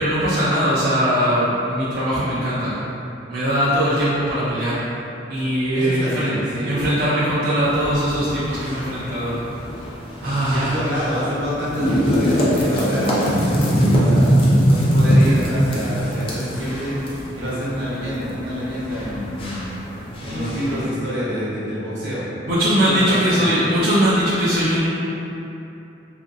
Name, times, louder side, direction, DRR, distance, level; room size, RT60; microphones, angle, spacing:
voice 1, 0.0-2.8 3.3-4.8 5.3-6.4 6.7-9.4 10.2-10.8 13.3-13.5 20.2-20.4 22.5-24.9, equal, 55° right, -11 dB, 0.5 m, -20 dB
voice 2, 5.7-6.8 10.4-17.0 17.3-19.7 20.2-22.3 22.8-23.5, equal, 85° right, -10 dB, 1.0 m, -27 dB
sound 1, 7.6-20.8, equal, 30° left, 0.4 m, -22 dB
2.9 x 2.5 x 2.6 m, 2.9 s
head